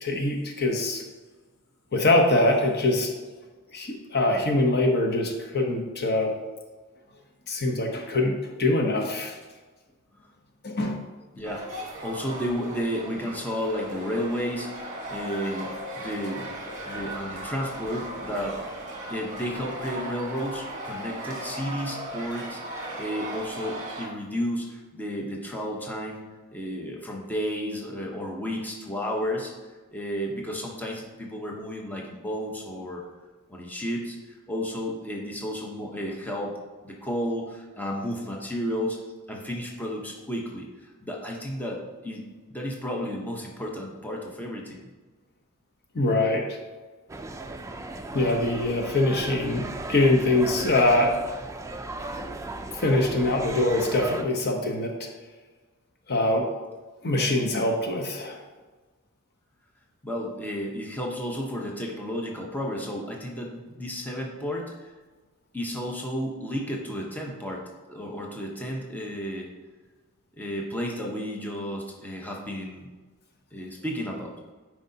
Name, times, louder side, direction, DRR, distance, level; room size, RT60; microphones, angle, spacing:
voice 1, 0.0-1.0 1.9-3.1 3.7-6.3 7.5-9.4 10.6-11.0 15.6-17.5 18.1-18.2 45.9-46.6 48.1-51.1 52.8-55.1 56.1-56.5 57.0-58.4, left 2 dB, 45° left, 2 dB, 0.9 m, -24 dB
voice 2, 11.3-11.7 12.0-15.7 16.0-16.5 16.9-18.8 19.1-26.2 26.5-29.5 29.9-33.0 33.5-34.2 34.5-36.6 36.8-39.0 39.3-42.2 42.5-44.9 60.0-64.9 65.5-69.5 70.4-72.9 73.5-74.3, equal, 10° left, -1 dB, 0.9 m, -32 dB
sound 1, 11.4-24.1, right 1 dB, 35° right, 1.4 m, -37 dB
sound 2, 47.1-54.2, right 2 dB, 15° right, 0.4 m, -36 dB
10.0 x 4.8 x 2.8 m, 1.3 s
head